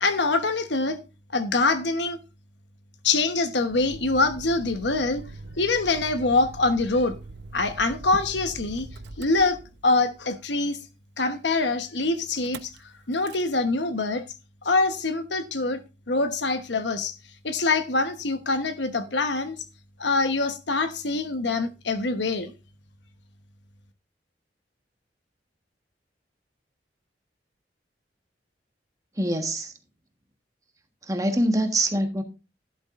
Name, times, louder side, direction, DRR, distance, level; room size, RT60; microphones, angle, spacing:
voice 1, 0.0-1.0 1.3-2.2 3.0-5.2 5.6-7.2 7.5-8.9 9.2-10.8 11.2-12.7 13.1-14.2 14.6-17.1 17.4-19.6 20.0-22.5, left 3 dB, 75° left, 1.2 m, -24 dB
Motor vehicle (road), 3.7-10.1 12.3-12.8 13.1-13.5, right 2 dB, 70° right, 0.8 m, -42 dB
voice 2, 29.2-29.7 31.1-32.2, right 1 dB, 20° right, 1.4 m, -24 dB
11.5 x 11.5 x 2.6 m
head